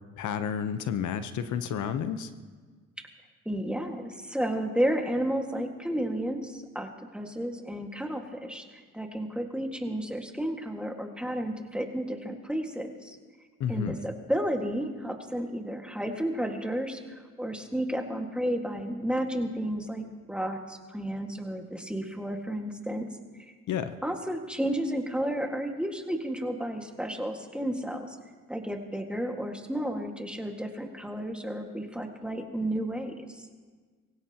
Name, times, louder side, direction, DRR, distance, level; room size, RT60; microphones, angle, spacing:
voice 1, 0.2-2.3 13.6-14.0 23.7-24.0, left 8 dB, 75° left, 10 dB, 0.9 m, -31 dB
voice 2, 3.5-8.6 8.9-13.2 13.7-23.1 24.0-28.2 28.5-33.5, equal, 5° right, 3 dB, 1.8 m, -32 dB
23.5 x 16.5 x 2.9 m, 1.5 s
cardioid pair, 90°, 30 cm